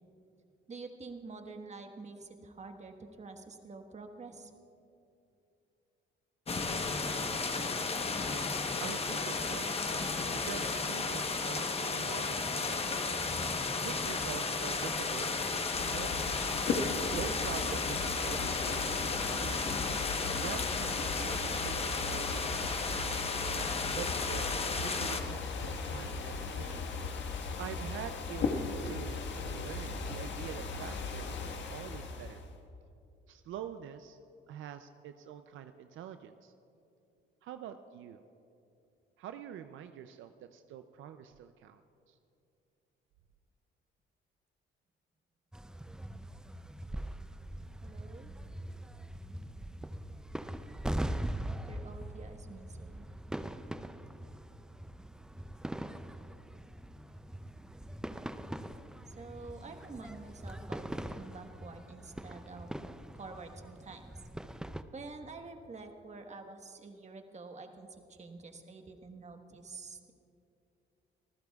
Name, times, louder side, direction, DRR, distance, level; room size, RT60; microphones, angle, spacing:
voice 1, 0.7-4.5 47.8-48.3 51.7-53.0 59.1-62.7 63.1-64.1 64.9-70.1, right 3 dB, 35° right, 5 dB, 1.3 m, -48 dB
sound 1, 6.5-25.2, left 4 dB, 30° left, 1.0 m, -34 dB
voice 2, 8.8-9.8 10.3-13.0 13.8-16.3 17.0-19.6 20.4-23.2 23.9-24.5 24.7-26.8 27.6-28.5 28.8-32.4 33.3-34.2 34.5-36.5 37.4-38.2 39.2-41.8 42.1-42.2, right 10 dB, 80° right, 9 dB, 0.5 m, -45 dB
sound 2, 15.7-32.5, left 4 dB, 70° left, 1.6 m, -37 dB
sound 3, 45.5-64.8, right 1 dB, 5° right, 0.4 m, -42 dB
25.0 x 15.0 x 2.4 m, 2.6 s
cardioid pair, 90°, 20 cm